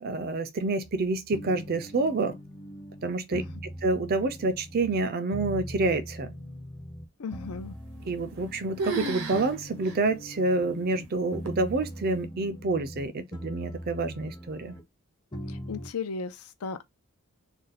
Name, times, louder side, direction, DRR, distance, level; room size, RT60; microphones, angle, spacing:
voice 1, 0.0-2.4 3.0-3.4 3.8-6.3 8.1-14.8, right 3 dB, 45° right, 0.4 m, -28 dB
sound 1, 0.8-5.1 5.3-7.1 7.3-11.1 11.3-13.1 13.3-14.8 15.3-15.9, equal, 20° left, 0.6 m, -41 dB
voice 2, 3.3-3.6 7.2-7.8 15.5-16.8, left 5 dB, 85° left, 0.5 m, -36 dB
sound 2, 8.0-8.5 8.8-9.5 9.8-10.0 10.6-10.7 11.5-11.8, right 3 dB, 80° right, 0.8 m, -33 dB
2.5 x 2.2 x 4.0 m
head